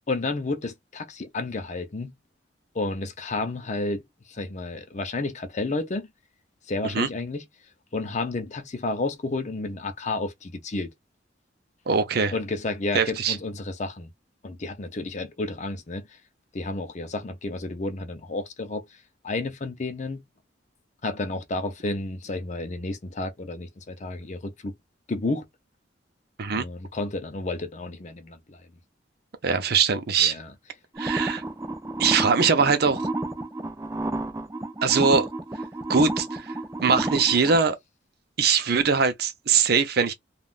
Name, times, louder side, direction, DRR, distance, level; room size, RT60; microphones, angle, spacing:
voice 1, 0.1-2.1 2.7-4.0 4.3-6.1 6.7-7.4 7.9-10.9 12.3-14.1 14.4-16.2 16.5-18.8 19.2-20.2 21.0-24.7 25.1-25.5 26.5-28.6 30.2-30.5, left 2 dB, 40° left, 0.6 m, -31 dB
voice 2, 11.9-12.3 12.9-13.4 26.4-26.7 29.4-30.3 31.0-31.4 32.0-33.1 34.8-35.3 35.9-36.5 36.8-37.8 38.4-40.1, right 5 dB, 60° right, 0.6 m, -22 dB
sound 1, 31.0-37.6, right 2 dB, 15° right, 0.5 m, -31 dB
3.6 x 2.4 x 2.4 m
head